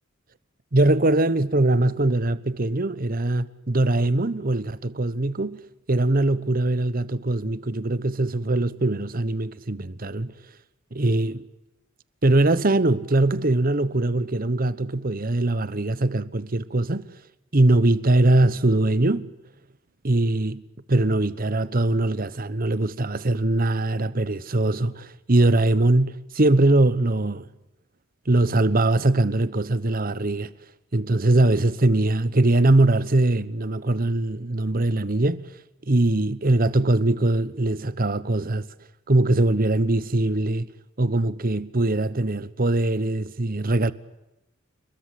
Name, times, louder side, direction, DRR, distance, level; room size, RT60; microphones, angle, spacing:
voice 1, 0.7-5.6 5.9-10.3 10.9-11.4 12.2-17.1 17.5-19.3 20.0-20.6 20.9-27.4 28.3-30.5 30.9-35.4 35.9-38.7 39.1-40.7 41.0-43.9, right 2 dB, 45° right, 1.1 m, -22 dB
29.5 x 21.5 x 8.4 m
head